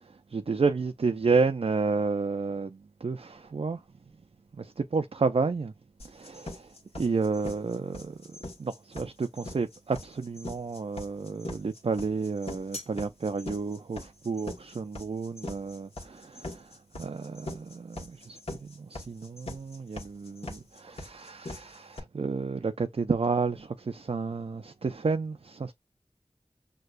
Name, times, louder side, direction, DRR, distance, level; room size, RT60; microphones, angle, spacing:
voice 1, 0.3-3.8 4.5-5.7 6.0-8.2 8.6-25.7, right 4 dB, 50° right, 0.4 m, -31 dB
sound 1, 6.0-22.0, left 2 dB, 55° left, 1.3 m, -41 dB
6.5 x 2.2 x 2.4 m
wide cardioid pair, 45°, 12 cm